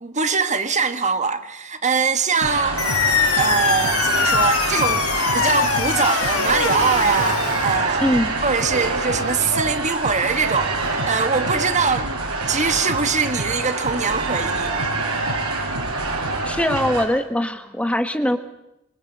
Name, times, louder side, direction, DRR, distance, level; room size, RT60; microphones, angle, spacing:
voice 1, 0.0-2.8 3.2-5.1 5.3-8.1 8.4-10.7 11.0-12.1 12.5-14.7, right 5 dB, 35° right, 1.6 m, -22 dB
sound 1, 2.4-17.1, right 2 dB, 90° right, 6.6 m, -25 dB
sound 2, 2.8-7.8, left 6 dB, 75° left, 4.7 m, -22 dB
voice 2, 8.0-8.3 16.4-18.4, left 1 dB, 5° left, 1.5 m, -21 dB
25.5 x 25.5 x 8.1 m
head